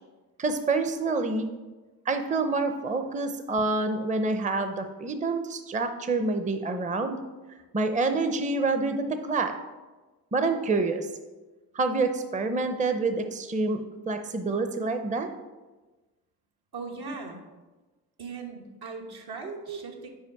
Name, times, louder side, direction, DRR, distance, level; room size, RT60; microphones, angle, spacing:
voice 1, 0.4-1.5 2.1-7.2 7.7-9.5 10.3-11.1 11.7-13.8 14.1-15.3 19.7-19.8, right 3 dB, 20° right, 7 dB, 0.6 m, -27 dB
voice 2, 16.7-17.4 18.2-20.1, right 4 dB, 70° right, 1 dB, 1.2 m, -39 dB
5.5 x 4.9 x 4.6 m, 1.2 s
supercardioid pair, 55°, 39 cm